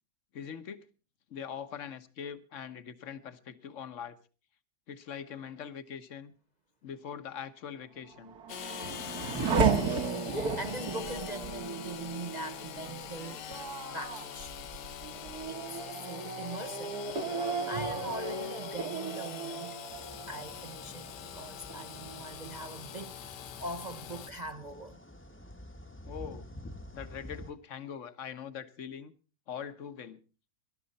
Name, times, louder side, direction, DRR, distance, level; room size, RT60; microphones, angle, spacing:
voice 1, 0.3-0.9 1.3-4.2 4.9-6.3 6.8-8.3 26.0-26.5 26.9-29.1 29.5-30.2, left 7 dB, 50° left, 1.4 m, -42 dB
Race car auto racing / Accelerating revving vroom, 8.1-21.3 21.7-22.4, right 4 dB, 65° right, 2.2 m, -35 dB
Engine / Sawing, 8.5-24.3, left 10 dB, 80° left, 1.5 m, -44 dB
voice 2, 9.4-14.6 15.5-17.0 17.4-19.8 20.3-25.0, right 2 dB, 40° right, 0.6 m, -42 dB
sound 1, 19.9-27.5, left 1 dB, 10° left, 1.0 m, -49 dB
19.0 x 12.0 x 4.1 m
omnidirectional pair, 1.8 m